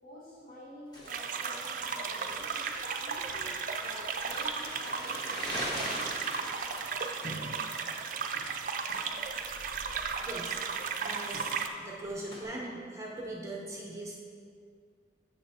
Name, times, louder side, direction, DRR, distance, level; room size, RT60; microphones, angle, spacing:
voice 1, 0.0-2.7 3.0-6.3, left 1 dB, 60° left, -10 dB, 1.3 m, -49 dB
Crumpling crinkling, 0.9-12.4, equal, 25° left, 1.2 m, -43 dB
sound 1, 1.1-11.7, right 5 dB, 50° right, 0.4 m, -35 dB
voice 2, 10.2-10.6 11.0-14.2, right 1 dB, 15° right, -2 dB, 0.7 m, -41 dB
8.6 x 6.8 x 2.7 m, 2.2 s
head